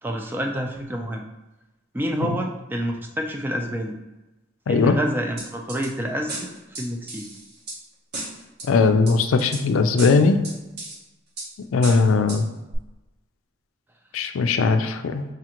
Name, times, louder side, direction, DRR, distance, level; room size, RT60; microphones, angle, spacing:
voice 1, 0.0-1.2 1.9-4.0 4.7-6.5 6.8-7.3, equal, 10° right, 2 dB, 0.3 m, -28 dB
voice 2, 4.7-5.0 8.7-10.4 11.7-12.4 14.1-15.3, left 4 dB, 80° left, 8 dB, 0.4 m, -19 dB
sound 1, 5.4-5.9 6.3-7.8 8.1-8.7 9.1-9.6 10.0-11.0 11.4-11.5 11.8-12.4 12.7-12.8, right 2 dB, 50° right, 0.9 m, -34 dB
5.0 x 2.4 x 2.9 m, 1.0 s
head